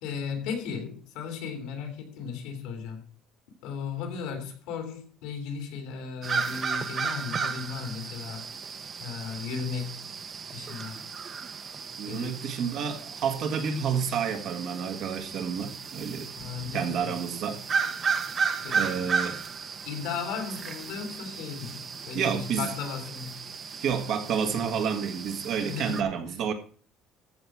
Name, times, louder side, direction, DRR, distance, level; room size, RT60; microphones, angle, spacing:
voice 1, 0.0-3.0 3.6-8.5 9.0-10.0 10.5-11.1 12.1-12.4 16.4-17.2 18.6-19.1 19.8-23.8 25.7-26.1, left 6 dB, 85° left, 2.9 m, -36 dB
sound 1, 6.2-26.0, right 5 dB, 30° right, 0.8 m, -34 dB
voice 2, 12.0-16.3 16.7-17.6 18.7-19.4 22.1-22.7 23.8-26.5, right 7 dB, 50° right, 1.6 m, -29 dB
14.0 x 5.7 x 4.8 m
cardioid pair, 165°, 0 cm